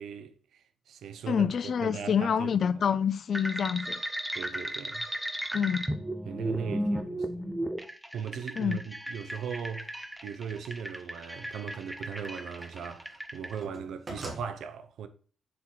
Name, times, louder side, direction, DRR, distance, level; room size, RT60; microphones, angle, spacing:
voice 1, 0.0-2.8 4.3-5.1 6.2-7.4 8.1-15.1, right 7 dB, 80° right, 0.8 m, -38 dB
voice 2, 1.3-4.0 5.5-5.9 8.6-8.8, left 7 dB, 45° left, 0.4 m, -27 dB
sound 1, 3.3-13.5, right 1 dB, 5° right, 0.7 m, -35 dB
sound 2, 9.9-10.0 11.7-13.0 13.2-14.5, right 2 dB, 25° right, 1.5 m, -43 dB
6.9 x 3.9 x 4.6 m
wide cardioid pair, 170°, 0 cm